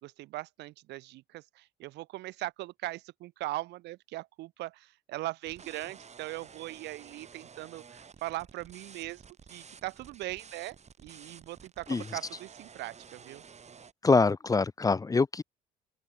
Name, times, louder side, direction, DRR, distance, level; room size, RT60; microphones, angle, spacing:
voice 1, 0.0-9.2 9.5-10.8 11.0-13.4, right 18 dB, 70° right, 0.7 m, -40 dB
sound 1, 5.4-13.9, right 6 dB, 35° right, 5.2 m, -52 dB
voice 2, 14.0-15.4, left 4 dB, 20° left, 0.5 m, -24 dB
open air
supercardioid pair, 70°, 19 cm